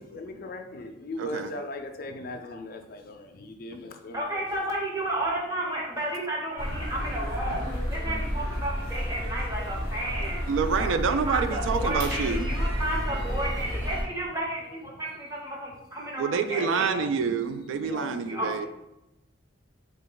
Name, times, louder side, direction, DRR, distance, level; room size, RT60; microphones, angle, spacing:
voice 1, 0.0-4.6 14.1-14.3 14.6-14.9 15.7-15.8 16.3-17.4 17.8-18.7, left 2 dB, 50° left, 0.4 m, -39 dB
voice 2, 4.1-7.6 7.9-10.5 11.2-17.0 18.3-18.7, right 1 dB, 15° right, 0.8 m, -32 dB
sound 1, 6.6-14.0, equal, 50° right, 1.2 m, -31 dB
voice 3, 10.5-12.5 16.2-18.7, right 5 dB, 75° right, 0.3 m, -27 dB
3.5 x 2.2 x 3.7 m
head